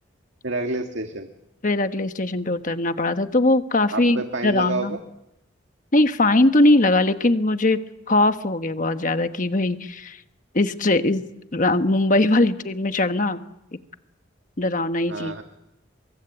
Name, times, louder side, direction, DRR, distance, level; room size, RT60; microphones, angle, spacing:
voice 1, 0.4-1.3 3.9-5.0 15.1-15.4, right 2 dB, 75° right, 5 dB, 1.8 m, -28 dB
voice 2, 1.6-5.0 5.9-7.8 8.1-10.2 10.5-11.2 11.5-13.4 14.6-15.3, left 2 dB, 40° left, 9 dB, 1.2 m, -20 dB
23.5 x 23.0 x 8.2 m, 0.87 s
head